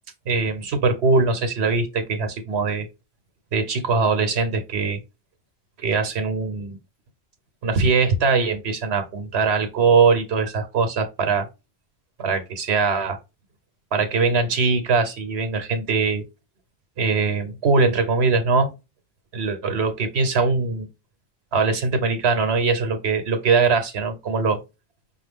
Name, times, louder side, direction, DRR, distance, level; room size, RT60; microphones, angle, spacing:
voice 1, 0.3-2.9 3.5-5.0 5.8-6.8 7.6-11.5 12.2-13.2 13.9-16.2 17.0-18.7 19.3-20.9 21.5-24.6, right 4 dB, 80° right, 1.1 m, -21 dB
5.6 x 2.2 x 3.4 m
omnidirectional pair, 1.1 m